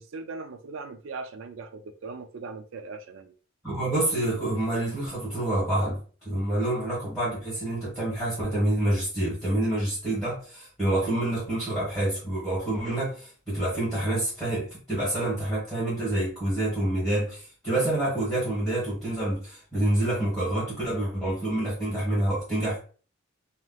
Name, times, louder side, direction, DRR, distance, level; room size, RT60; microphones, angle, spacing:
voice 1, 0.0-3.3, right 4 dB, 65° right, 0.4 m, -39 dB
voice 2, 3.6-22.8, right 1 dB, ahead, 1.4 m, -27 dB
3.2 x 2.8 x 2.3 m
head